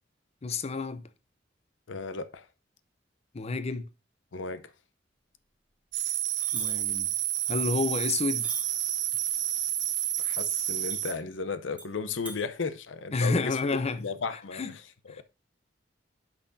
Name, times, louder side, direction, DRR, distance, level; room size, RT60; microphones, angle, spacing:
voice 1, 0.4-1.0 3.3-3.9 6.5-7.1 7.5-8.5 13.1-14.0 14.5-14.7 15.1-15.2, left 3 dB, 35° left, 0.5 m, -29 dB
voice 2, 1.9-2.5 4.3-4.6 10.2-13.6 14.0-14.8 15.2-15.3, left 4 dB, 85° left, 0.6 m, -35 dB
sound 1, 5.9-11.1, right 12 dB, 75° right, 1.0 m, -30 dB
sound 2, 6.4-6.7 8.4-8.7 10.9-11.0 11.8-11.9 12.2-12.4, right 2 dB, 5° right, 1.0 m, -39 dB
10.0 x 5.8 x 2.6 m
head